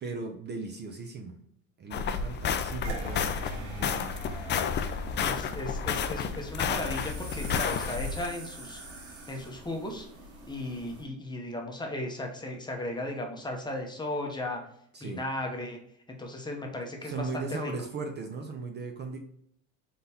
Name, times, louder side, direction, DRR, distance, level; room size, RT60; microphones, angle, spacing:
voice 1, 0.0-1.4 1.8-4.1 14.9-15.2 17.0-19.2, right 4 dB, 30° right, 4 dB, 0.5 m, -38 dB
sound 1, 1.9-8.3, left 6 dB, 35° left, 0.4 m, -31 dB
sound 2, 2.8-11.0, right 2 dB, 80° right, 1.6 m, -44 dB
voice 2, 5.2-8.8 9.3-10.1 10.5-14.6 15.0-15.8 16.2-17.7, left 1 dB, 15° left, 1 dB, 0.7 m, -36 dB
3.9 x 3.7 x 2.8 m, 0.70 s
supercardioid pair, 105°, 34 cm